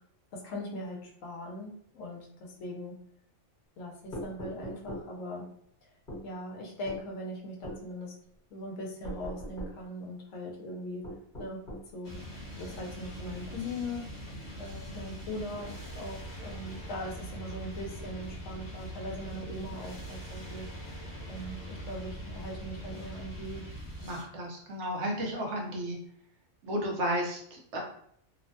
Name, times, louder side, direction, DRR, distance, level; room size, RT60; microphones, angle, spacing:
voice 1, 0.3-3.0 3.8-5.5 6.2-8.1 8.5-11.0 11.4-11.6 11.9-12.2 12.6-14.1 14.6-20.7 21.3-23.6, left 1 dB, 80° left, 0 dB, 1.0 m, -40 dB
sound 1, 4.1-5.1 6.1-6.3 6.9-7.0 7.6-7.8 9.0-9.8 11.0-11.9, equal, 40° left, 1.3 m, -40 dB
sound 2, 12.0-24.2, equal, 60° left, 1.1 m, -42 dB
voice 2, 24.0-26.0 26.6-27.8, equal, 65° right, -1 dB, 0.9 m, -33 dB
3.0 x 2.1 x 2.6 m, 0.66 s
omnidirectional pair, 1.4 m